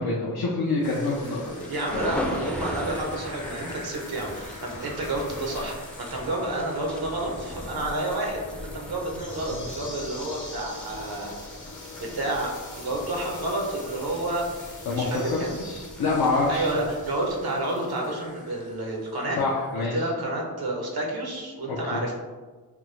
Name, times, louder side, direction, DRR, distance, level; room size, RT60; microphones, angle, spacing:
voice 1, 0.0-1.6 14.9-16.7 19.3-20.1 21.7-22.0, left 3 dB, 85° left, -3 dB, 0.5 m, -26 dB
sound 1, 0.8-19.4 19.6-19.7, left 2 dB, 50° left, 0.7 m, -42 dB
sound 2, 0.9-17.8, left 1 dB, 5° left, 0.3 m, -40 dB
voice 2, 1.7-11.3 12.0-14.5 14.9-15.5 16.5-19.4 19.7-22.1, right 1 dB, 85° right, 0 dB, 0.7 m, -30 dB
3.4 x 2.0 x 3.1 m, 1.3 s
cardioid pair, 45°, 37 cm